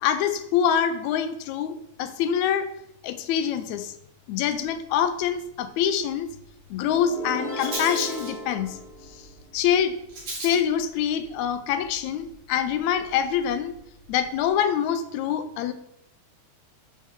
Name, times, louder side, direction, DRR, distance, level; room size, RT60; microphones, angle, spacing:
voice 1, 0.0-2.7 3.0-3.9 4.3-6.3 6.7-8.8 9.5-10.0 10.4-13.7 14.1-15.7, left 8 dB, 80° left, 10 dB, 1.9 m, -25 dB
Rattle, 4.6-14.5, right 2 dB, 65° right, 4.3 m, -43 dB
sound 1, 6.8-9.6, equal, 5° right, 1.8 m, -35 dB
11.0 x 4.3 x 3.6 m, 0.79 s
omnidirectional pair, 3.3 m